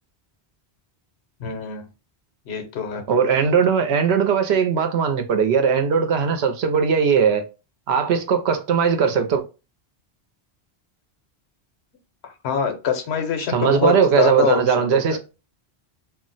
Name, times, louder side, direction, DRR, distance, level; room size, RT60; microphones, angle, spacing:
voice 1, 1.4-1.9 2.5-3.0 12.2-15.2, left 7 dB, 90° left, 1.0 m, -25 dB
voice 2, 3.1-7.4 7.9-9.4 13.5-15.2, right 6 dB, 85° right, 0.8 m, -19 dB
2.4 x 2.1 x 3.8 m
omnidirectional pair, 1.1 m